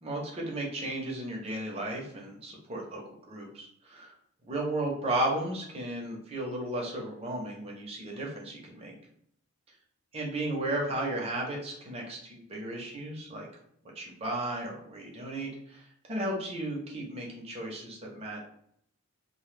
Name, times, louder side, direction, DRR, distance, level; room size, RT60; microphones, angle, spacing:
voice 1, 0.0-4.1 4.4-8.9 10.1-13.5 14.0-18.4, right 1 dB, 25° right, -2 dB, 0.5 m, -34 dB
2.0 x 2.0 x 3.1 m, 0.68 s
head